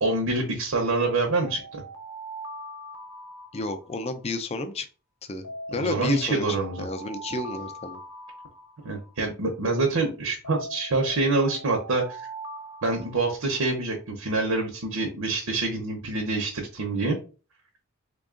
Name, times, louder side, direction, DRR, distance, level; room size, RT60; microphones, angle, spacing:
voice 1, 0.0-1.8 5.7-6.9 8.8-12.2 12.8-17.2, right 3 dB, 85° right, 1 dB, 0.8 m, -26 dB
Alarm, 1.0-4.3 5.4-9.3 10.4-13.7, right 1 dB, 85° left, 0.8 m, -41 dB
voice 2, 3.5-4.9 5.2-8.0, left 2 dB, 30° left, 8 dB, 0.4 m, -32 dB
3.5 x 2.3 x 3.7 m, 0.35 s
head